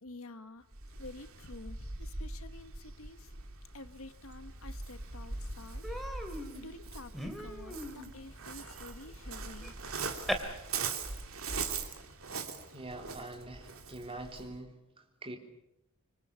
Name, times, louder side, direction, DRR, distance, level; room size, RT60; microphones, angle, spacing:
voice 1, 0.0-0.7 1.0-3.3 3.7-5.8 6.5-9.8, left 2 dB, 75° left, 10 dB, 1.4 m, -49 dB
Waves surf, 0.7-14.6, right 4 dB, 70° right, 2.8 m, -41 dB
Human voice, 4.8-4.9 5.2-5.4 5.8-10.3, equal, ahead, 2.8 m, -41 dB
voice 2, 12.7-15.4, right 2 dB, 25° right, 3 dB, 3.5 m, -44 dB
26.0 x 25.5 x 7.0 m, 0.84 s
head